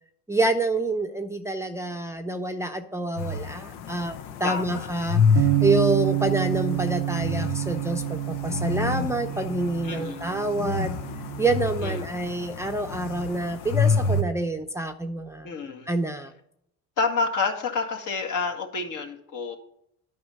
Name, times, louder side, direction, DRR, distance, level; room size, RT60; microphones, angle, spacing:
voice 1, 0.3-11.0 11.4-15.5 15.9-16.3, right 2 dB, 10° right, 6 dB, 0.6 m, -27 dB
sound 1, 3.2-14.2, left 4 dB, 85° left, 0.9 m, -29 dB
voice 2, 4.4-4.9 9.8-10.3 11.8-12.0 15.4-15.9 17.0-19.6, left 4 dB, 55° left, 3 dB, 1.9 m, -29 dB
Bass guitar, 5.4-11.6, right 16 dB, 80° right, 0.6 m, -28 dB
9.5 x 5.5 x 6.4 m, 0.75 s
supercardioid pair, 90°, 37 cm